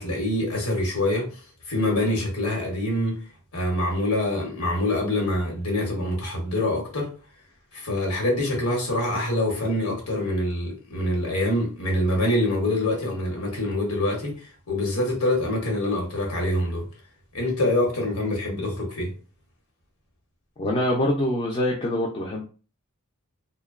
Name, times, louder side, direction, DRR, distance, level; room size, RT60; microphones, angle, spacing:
voice 1, 0.0-1.4 1.7-3.2 3.5-7.1 7.7-16.9 17.3-19.1, left 1 dB, 85° left, 1.0 m, -25 dB
voice 2, 20.6-22.5, left 1 dB, 25° left, 0.4 m, -24 dB
2.6 x 2.2 x 2.4 m
head